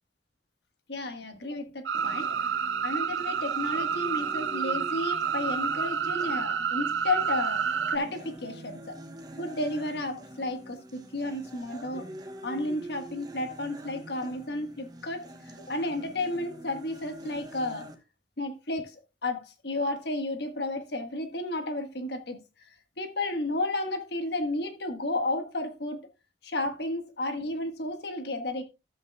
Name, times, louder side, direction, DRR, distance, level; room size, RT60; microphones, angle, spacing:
voice 1, 0.9-2.5 2.8-9.0 9.4-12.1 12.4-17.9 18.4-22.4 23.0-26.1 26.4-28.6, left 2 dB, 65° left, 1.4 m, -32 dB
sound 1, 1.9-18.0, right 1 dB, 20° right, 1.0 m, -45 dB
sound 2, 1.9-8.0, right 7 dB, 80° right, 0.6 m, -29 dB
13.0 x 8.2 x 2.2 m
head